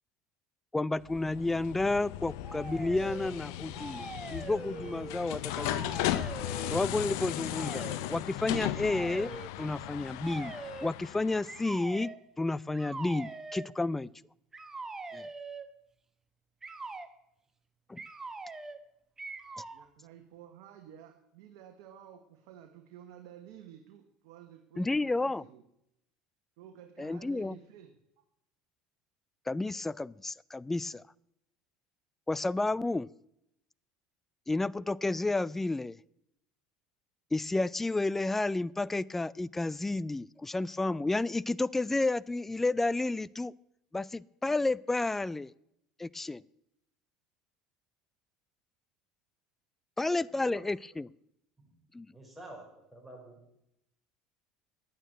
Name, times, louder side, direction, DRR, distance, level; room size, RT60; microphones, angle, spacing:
voice 1, 0.7-6.2 6.7-7.8 8.1-9.3 9.6-10.5 10.8-14.1 15.1-15.3 17.9-18.0 24.8-25.4 27.0-27.6 29.5-31.0 32.3-33.1 34.5-36.0 37.3-43.5 43.9-45.5 46.0-46.4 50.0-51.1 51.9-52.1, left 2 dB, 10° left, 23 dB, 0.4 m, -31 dB
sound 1, 1.0-11.7, left 13 dB, 75° left, 0.7 m, -37 dB
sound 2, 2.4-3.3 3.7-5.2 5.5-6.8 7.5-8.0 8.8-9.5 10.2-10.9 11.5-12.2 12.7-13.7 14.5-15.7 16.6-17.1 18.0-18.8 19.2-19.8, right 3 dB, 20° right, 1.2 m, -43 dB
voice 2, 19.7-25.6 26.6-28.2, right 10 dB, 75° right, 5 dB, 1.2 m, -52 dB
voice 3, 50.1-50.6 51.6-51.7 52.1-53.4, right 1 dB, 5° right, -1 dB, 5.8 m, -50 dB
11.0 x 9.1 x 7.8 m, 0.79 s
hypercardioid pair, 85°, 2 cm